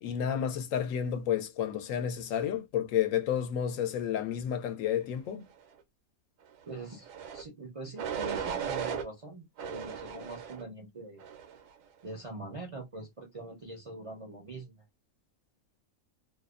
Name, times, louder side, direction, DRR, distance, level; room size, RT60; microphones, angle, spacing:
voice 1, 0.0-5.5, left 9 dB, 80° left, 1.0 m, -31 dB
voice 2, 6.7-11.2 12.0-14.8, right 2 dB, 45° right, 0.4 m, -43 dB
sound 1, 7.0-7.4 8.0-9.0 9.6-10.6 11.2-11.6, right 7 dB, 75° right, 1.0 m, -36 dB
2.6 x 2.1 x 2.3 m
omnidirectional pair, 1.4 m